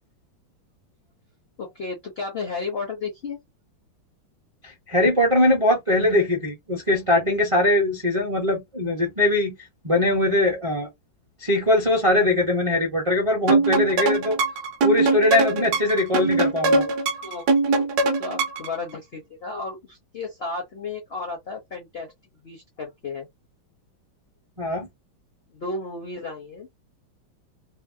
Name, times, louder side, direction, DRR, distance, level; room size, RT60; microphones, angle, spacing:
voice 1, 1.6-3.4 17.2-17.9 18.2-22.1 22.4-23.3 25.5-26.7, left 3 dB, 70° left, 0.5 m, -33 dB
voice 2, 4.6-9.5 9.8-10.9 11.4-14.4 14.8-16.9 24.6-24.9, left 1 dB, 45° right, 0.4 m, -21 dB
sound 1, 13.5-18.8, right 3 dB, 70° right, 1.0 m, -22 dB
3.4 x 2.1 x 2.6 m
omnidirectional pair, 2.2 m